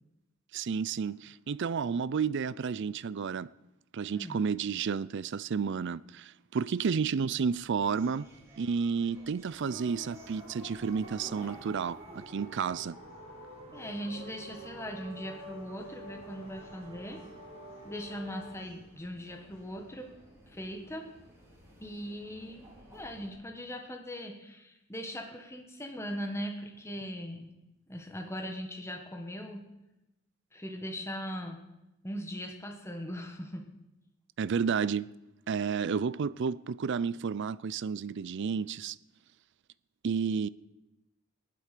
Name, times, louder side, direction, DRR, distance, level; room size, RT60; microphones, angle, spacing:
voice 1, 0.5-3.5 3.9-8.3 8.6-13.0 34.4-35.1 35.5-39.0 40.0-40.5, right 6 dB, 60° right, 0.4 m, -31 dB
sound 1, 7.5-23.3, right 1 dB, 15° right, 4.9 m, -56 dB
sound 2, 9.7-18.5, right 1 dB, 30° right, 3.5 m, -47 dB
voice 2, 13.7-17.2 17.8-20.1 20.5-21.1 21.8-22.7 22.9-27.5 27.9-29.7 30.5-31.6 32.0-33.7, equal, 15° left, 1.5 m, -40 dB
15.5 x 11.5 x 6.7 m
head